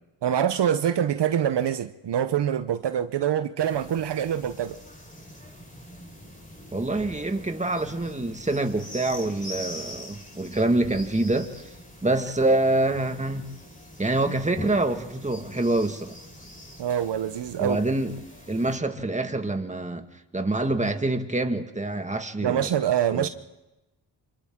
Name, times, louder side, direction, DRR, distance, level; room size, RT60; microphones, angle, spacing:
voice 1, 0.2-4.8 16.8-17.8 22.4-23.3, right 9 dB, 65° right, 1.0 m, -25 dB
sound 1, 3.6-18.8, equal, 20° left, 4.8 m, -43 dB
voice 2, 6.7-11.5 12.0-13.5 14.0-16.2 17.6-18.2 18.5-20.0 20.3-22.7 23.1-23.3, right 2 dB, 15° right, 1.9 m, -26 dB
27.5 x 25.5 x 3.8 m
cardioid pair, 60°, 45 cm